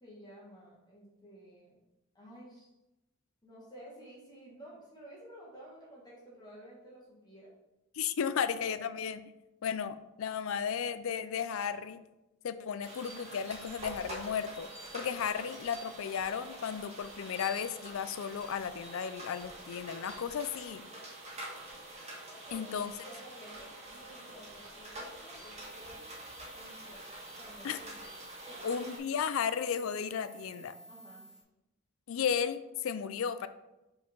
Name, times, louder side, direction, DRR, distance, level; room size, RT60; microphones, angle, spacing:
voice 1, 0.0-1.8 2.1-2.7 3.4-7.5 8.7-8.9 22.4-26.0 26.5-27.0 27.3-28.1 28.5-28.7 30.9-31.3, equal, 20° left, -5 dB, 1.5 m, -52 dB
voice 2, 8.0-9.2 9.6-12.0 12.4-20.8 22.5-22.9 27.6-27.8 28.6-30.8 32.1-33.5, left 7 dB, 65° left, 13 dB, 0.4 m, -34 dB
sound 1, 12.8-29.0, right 1 dB, 30° right, 1.9 m, -46 dB
sound 2, 25.6-31.4, right 2 dB, 5° right, 1.4 m, -52 dB
5.3 x 4.5 x 5.1 m, 0.97 s
head